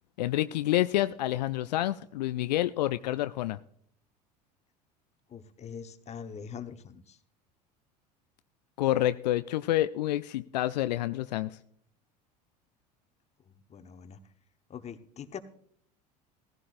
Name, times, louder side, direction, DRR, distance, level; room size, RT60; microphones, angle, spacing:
voice 1, 0.2-3.6 8.8-11.5, left 14 dB, 75° left, 12 dB, 0.4 m, -28 dB
voice 2, 5.3-7.2 13.5-14.2 14.7-15.4, left 7 dB, 30° left, 9 dB, 1.0 m, -43 dB
15.5 x 15.0 x 2.5 m, 0.64 s
hypercardioid pair, 75°, 21 cm